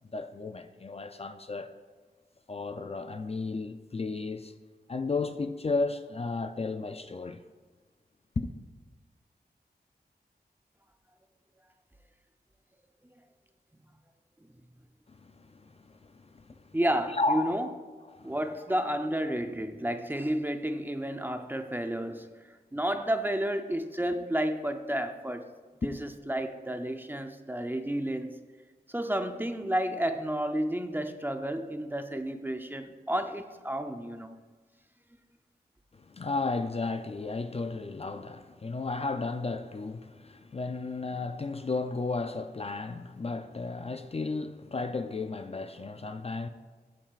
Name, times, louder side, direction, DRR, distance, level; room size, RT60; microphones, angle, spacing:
voice 1, 0.0-1.7 2.5-4.5 4.9-7.4 8.4-8.5 15.1-16.8 17.1-17.6 18.1-18.3 25.9-26.0 35.9-46.5, left 3 dB, 35° left, 0.4 m, -34 dB
voice 2, 16.7-17.7 18.2-22.3 22.7-25.5 25.8-28.4 28.9-34.3, right 1 dB, 10° right, 0.6 m, -31 dB
15.0 x 7.4 x 2.4 m
wide cardioid pair, 65°, 17 cm